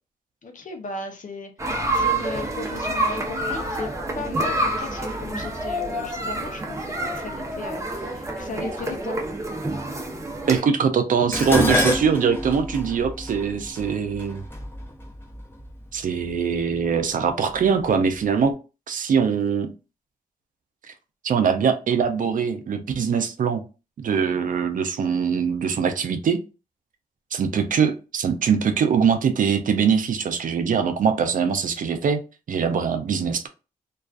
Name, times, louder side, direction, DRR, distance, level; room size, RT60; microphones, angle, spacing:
voice 1, 0.4-3.9 4.2-9.2, left 3 dB, 60° left, 0.6 m, -36 dB
sound 1, 1.6-10.6, right 1 dB, 20° right, 0.7 m, -28 dB
voice 2, 10.5-14.4 15.9-18.5 18.9-19.7 21.2-23.6 24.0-26.4 27.3-32.2 32.5-33.5, right 6 dB, 60° right, 0.4 m, -22 dB
Dishes pots and pans, 11.3-15.7 16.6-17.0 17.4-18.2 18.4-18.5, left 1 dB, 15° left, 0.9 m, -26 dB
2.3 x 2.3 x 2.4 m
cardioid pair, 60°, 15 cm